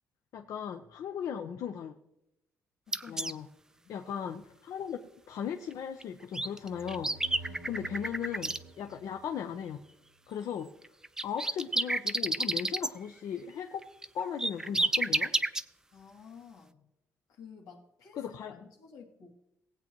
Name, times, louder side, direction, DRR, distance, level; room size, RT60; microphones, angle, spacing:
voice 1, 0.3-1.9 3.1-3.5 3.9-5.0 5.3-9.8 10.3-10.7 11.2-13.8 14.1-15.3 18.2-18.5, left 8 dB, 65° left, 5 dB, 0.7 m, -37 dB
voice 2, 2.9-3.3 3.7-3.9 7.4-7.7 15.9-16.8 17.3-19.3, left 6 dB, 90° left, -1 dB, 2.3 m, -52 dB
sound 1, 2.9-3.3 6.0-6.1 6.3-8.6 10.8-12.9 13.8-15.6, right 2 dB, 10° right, 0.4 m, -30 dB
sound 2, 6.4-10.0, right 2 dB, 65° right, 0.9 m, -50 dB
18.5 x 8.4 x 3.0 m, 0.83 s
cardioid pair, 125°, 6 cm